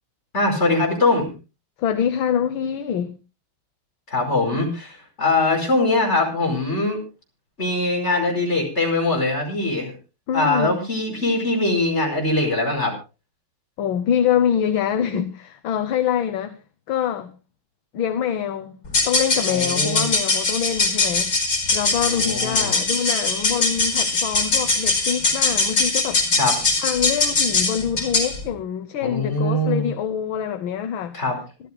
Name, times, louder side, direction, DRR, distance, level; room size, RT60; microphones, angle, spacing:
voice 1, 0.3-1.3 4.1-7.0 7.6-9.9 10.3-12.9 19.5-20.1 22.0-22.7 26.4-26.6 29.0-29.9 31.1-31.4, left 2 dB, 30° left, 5.5 m, -22 dB
voice 2, 1.8-3.1 4.5-4.6 10.3-10.7 13.8-16.5 16.9-17.3 17.9-18.8 19.0-21.3 21.7-26.2 26.8-31.2, left 9 dB, 70° left, 1.6 m, -25 dB
sound 1, 18.9-28.4, left 3 dB, 55° left, 5.4 m, -21 dB
25.5 x 13.5 x 2.2 m
omnidirectional pair, 2.3 m